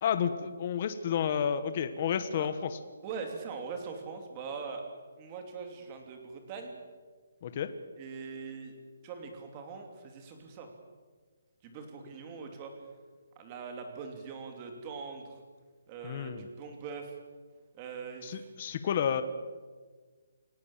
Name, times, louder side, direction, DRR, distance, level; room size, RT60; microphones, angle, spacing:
voice 1, 0.0-2.7 7.4-7.7 16.0-16.5 18.2-19.2, left 8 dB, 25° left, 10 dB, 1.2 m, -31 dB
voice 2, 3.0-4.9 5.2-6.8 8.0-8.8 9.0-10.7 11.6-12.7 13.4-15.4 15.9-17.1 17.7-18.5, right 5 dB, 15° right, 4 dB, 3.0 m, -42 dB
29.5 x 17.0 x 7.4 m, 1.5 s
hypercardioid pair, 175°, 0 cm